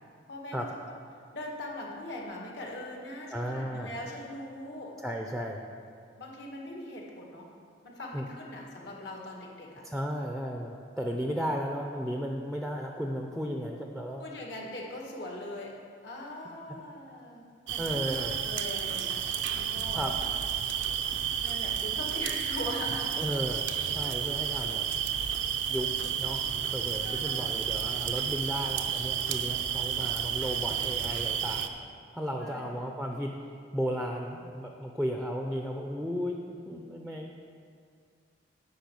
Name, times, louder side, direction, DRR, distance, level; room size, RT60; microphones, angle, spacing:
voice 1, 0.3-0.7 1.3-5.0 6.2-7.6 7.8-9.8 14.2-19.2 19.5-20.1 21.4-23.2 27.0-27.6 32.3-32.7, left 1 dB, 65° left, -1 dB, 1.9 m, -41 dB
voice 2, 3.3-3.9 5.0-5.6 8.1-8.3 9.8-14.3 17.8-18.4 19.9-20.2 23.2-24.9 25.7-25.9 26.2-31.7 32.1-33.3 33.7-37.3, equal, ahead, 1 dB, 0.6 m, -34 dB
Sleeping Campers, 17.7-31.7, right 9 dB, 85° right, 0.7 m, -31 dB
10.5 x 5.6 x 8.5 m, 2.3 s
head